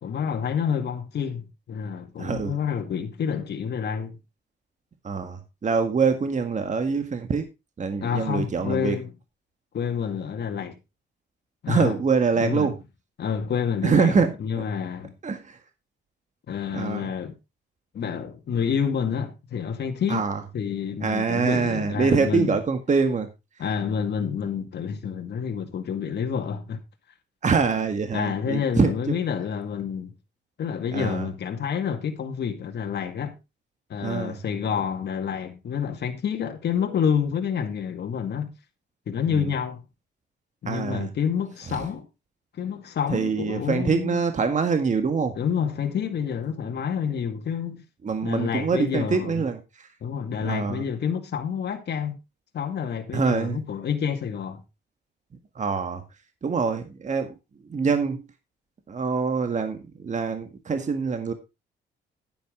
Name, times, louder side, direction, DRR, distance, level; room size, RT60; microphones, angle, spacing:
voice 1, 0.0-4.2 8.0-9.1 9.7-10.8 11.6-11.9 12.4-12.7 13.2-14.2 14.4-15.1 16.5-17.4 17.9-20.2 20.5-22.5 23.6-26.8 28.1-30.1 30.6-33.4 33.9-38.5 39.1-39.8 40.6-42.1 42.5-44.2 45.4-47.8 48.2-49.4 50.0-52.2 52.5-54.6, left 7 dB, 55° left, 2.0 m, -28 dB
voice 2, 2.2-2.6 5.0-7.5 7.8-9.0 11.7-12.8 13.8-14.6 15.2-15.6 16.7-17.1 20.1-20.4 21.0-23.3 27.4-29.2 30.9-31.3 34.0-34.4 39.3-39.5 40.7-41.1 41.7-41.9 43.1-45.4 48.0-49.9 50.4-50.9 53.1-53.6 55.6-56.0 56.4-57.4 57.6-58.2 58.9-61.3, right 5 dB, 35° right, 1.8 m, -25 dB
10.0 x 9.5 x 3.8 m
cardioid pair, 90°, 20 cm